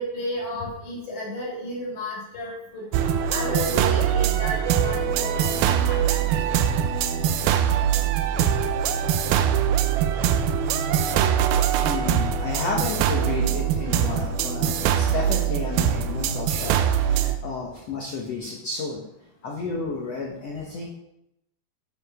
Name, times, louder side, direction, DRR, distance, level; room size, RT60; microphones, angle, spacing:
voice 1, 0.0-6.4, left 1 dB, 45° left, -4 dB, 4.8 m, -33 dB
sound 1, 2.9-17.4, right 9 dB, 80° right, 2.2 m, -22 dB
voice 2, 11.8-19.0 19.4-20.9, left 4 dB, 85° left, -2 dB, 1.4 m, -32 dB
10.0 x 6.9 x 4.9 m, 0.82 s
omnidirectional pair, 4.8 m